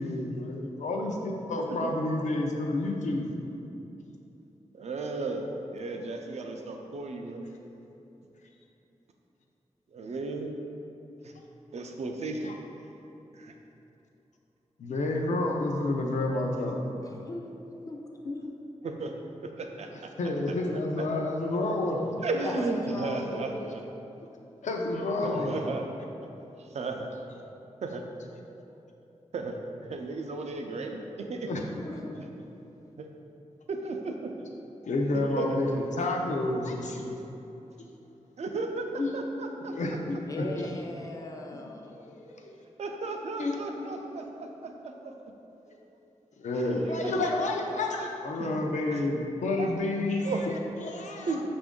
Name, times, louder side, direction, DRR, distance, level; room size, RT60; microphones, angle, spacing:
voice 1, 0.0-3.3 12.4-12.5 14.8-16.8 20.2-22.1 23.3-23.5 24.6-25.6 31.4-31.6 34.8-37.2 37.8-37.9 39.0-39.2 39.7-40.7 41.8-42.5 43.4-43.6 43.8-44.2 46.4-51.4, left 2 dB, 90° left, 1 dB, 0.5 m, -30 dB
voice 2, 1.6-1.9 4.7-7.5 9.9-10.5 11.2-11.3 11.7-12.5 13.3-13.5 18.8-19.1 19.6-19.9 22.2-23.8 25.2-25.8 26.7-27.1 27.8-28.0 29.3-29.5 29.9-31.5 33.0-33.1 33.7-34.3 35.4-35.5 38.4-39.7 42.8-44.7 45.0-45.1 46.5-47.4 48.0-48.1 48.4-48.6 48.9-49.1 49.6-49.7 50.2-50.5 51.3-51.4, right 3 dB, 65° right, 3 dB, 0.4 m, -34 dB
voice 3, 16.9-17.5 17.9-18.5 22.4-23.5 31.5-32.2 32.5-32.6 40.3-42.0, left 2 dB, 30° left, 2 dB, 0.4 m, -39 dB
5.9 x 2.5 x 3.6 m, 2.9 s
wide cardioid pair, 140°, 12 cm